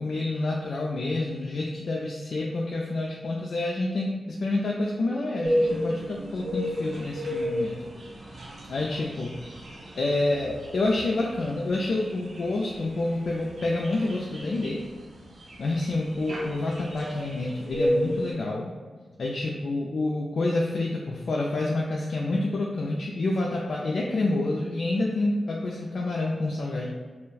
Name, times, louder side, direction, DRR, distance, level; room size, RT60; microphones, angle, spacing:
voice 1, 0.0-7.9 8.4-9.4 9.9-14.8 15.6-18.7 19.2-26.9, left 2 dB, 70° left, -2 dB, 0.3 m, -28 dB
sound 1, 5.4-18.3, equal, 70° right, 0.6 m, -32 dB
2.3 x 2.1 x 3.8 m, 1.5 s
cardioid pair, 60°, 0 cm